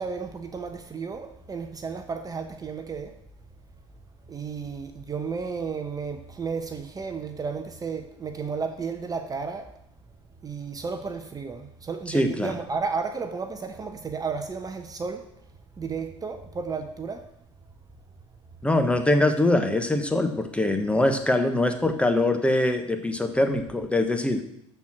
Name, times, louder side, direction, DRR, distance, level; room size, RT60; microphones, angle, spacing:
voice 1, 0.0-3.1 4.3-9.8 10.4-15.3 15.8-17.3, right 5 dB, 25° right, 7 dB, 0.9 m, -33 dB
voice 2, 12.1-12.5 18.6-24.4, left 1 dB, 5° left, 6 dB, 1.2 m, -23 dB
13.0 x 4.6 x 6.2 m, 0.76 s
hypercardioid pair, 75°, 16 cm